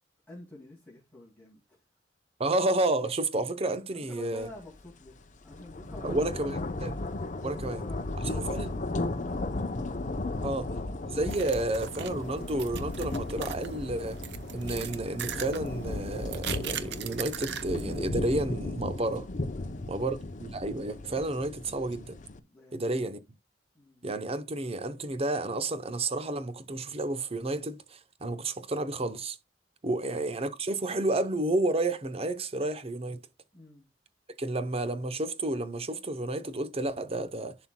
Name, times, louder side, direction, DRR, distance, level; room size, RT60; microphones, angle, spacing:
voice 1, 0.3-1.9 3.9-6.7 7.3-10.8 19.6-20.1 22.4-23.2 23.7-24.2 29.9-30.2 33.5-33.9, left 2 dB, 10° left, 2.3 m, -50 dB
voice 2, 2.4-4.5 6.0-6.9 7.4-7.8 8.2-8.7 10.4-10.7 11.1-14.2 14.5-19.3 19.9-22.2 22.7-23.2 24.0-29.4 29.8-33.2 34.4-37.6, right 2 dB, 35° right, 0.8 m, -31 dB
sound 1, 4.6-4.8 5.1-22.4, left 2 dB, 45° left, 0.7 m, -35 dB
sound 2, 11.2-18.1, right 8 dB, 65° right, 0.7 m, -40 dB
11.0 x 4.4 x 2.2 m
head